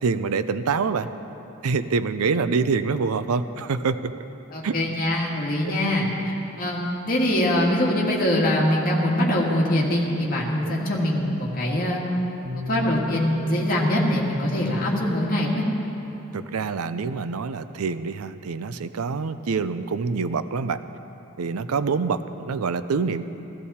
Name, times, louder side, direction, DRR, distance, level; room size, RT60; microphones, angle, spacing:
voice 1, 0.0-1.1 1.6-4.1 4.6-4.8 10.6-10.8 16.3-20.8 21.4-23.2, right 5 dB, 85° right, 12 dB, 0.5 m, -26 dB
voice 2, 4.5-12.0 12.7-15.6, left 1 dB, 40° left, -3 dB, 2.0 m, -23 dB
sound 1, 12.4-16.5, left 3 dB, 50° right, 1.2 m, -38 dB
15.5 x 15.0 x 4.2 m, 3.0 s
head